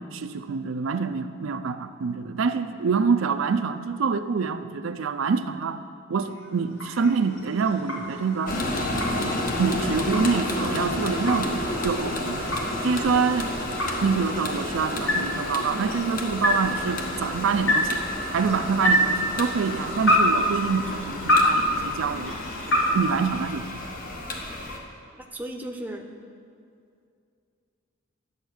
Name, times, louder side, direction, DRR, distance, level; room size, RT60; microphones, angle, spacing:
voice 1, 0.0-5.8 6.1-8.6 9.6-12.5 12.8-13.5 14.0-18.1 18.3-22.4 22.9-23.8, right 5 dB, 75° right, 9 dB, 0.5 m, -26 dB
sound 1, 6.2-24.0, equal, 75° left, 1.9 m, -28 dB
sound 2, 8.5-24.8, left 1 dB, 45° left, 1.2 m, -31 dB
voice 2, 25.2-26.1, right 1 dB, 10° right, 3 dB, 0.7 m, -36 dB
11.0 x 8.0 x 6.3 m, 2.4 s
head